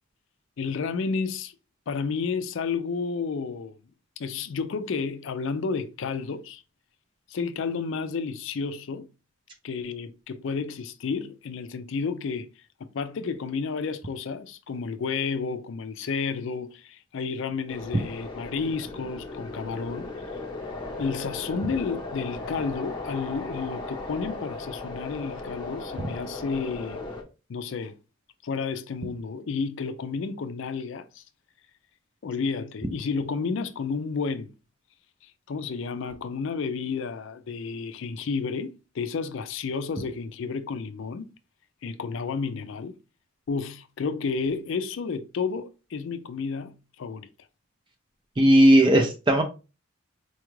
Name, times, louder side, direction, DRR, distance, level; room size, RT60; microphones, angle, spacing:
voice 1, 0.6-1.5 1.9-3.7 4.2-6.6 7.3-9.1 9.6-12.5 12.8-20.1 21.0-27.1 27.5-28.0 28.4-31.2 32.2-34.5 35.2-41.3 41.8-42.9 43.5-47.3, left 5 dB, 60° left, 0.4 m, -31 dB
sound 1, 17.7-27.2, left 2 dB, 20° left, 0.8 m, -37 dB
voice 2, 48.4-49.4, right 1 dB, 20° right, 0.4 m, -17 dB
4.3 x 2.4 x 3.0 m
head